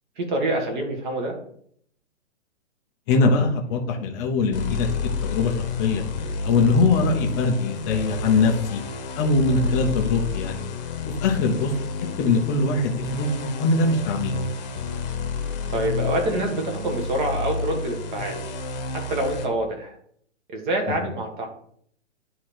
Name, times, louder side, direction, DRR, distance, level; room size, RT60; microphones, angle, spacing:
voice 1, 0.2-1.4 15.7-18.4 18.9-20.0 20.5-21.5, right 1 dB, 40° right, 3 dB, 1.8 m, -26 dB
voice 2, 3.1-6.0 6.4-8.8 9.2-10.6 11.2-11.7 12.2-14.4 20.9-21.0, left 3 dB, 15° left, 1 dB, 0.6 m, -22 dB
sound 1, 4.5-19.5, left 3 dB, 35° left, 1.1 m, -30 dB
9.7 x 3.8 x 4.4 m, 0.64 s
hypercardioid pair, 160°, 37 cm